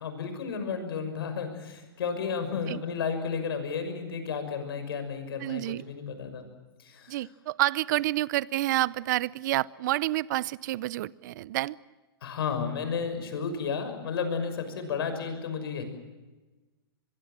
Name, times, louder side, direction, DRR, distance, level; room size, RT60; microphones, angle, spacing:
voice 1, 0.0-6.5 6.8-7.3 12.2-15.8, left 6 dB, 70° left, 8 dB, 6.2 m, -32 dB
voice 2, 5.4-5.8 7.1-11.8, right 16 dB, 50° right, 22 dB, 0.7 m, -28 dB
24.0 x 22.5 x 7.6 m, 1.2 s
hypercardioid pair, 140°, 13 cm